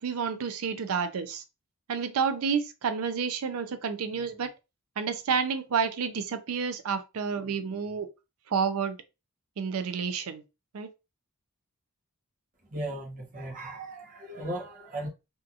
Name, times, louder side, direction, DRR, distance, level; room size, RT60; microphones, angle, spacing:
voice 1, 0.0-1.4 1.9-4.5 5.0-8.1 8.5-9.0 9.6-10.4 10.7-10.9, right 6 dB, 80° right, 0.4 m, -30 dB
voice 2, 12.7-15.1, right 1 dB, 40° right, 0.9 m, -37 dB
2.7 x 2.4 x 2.5 m
head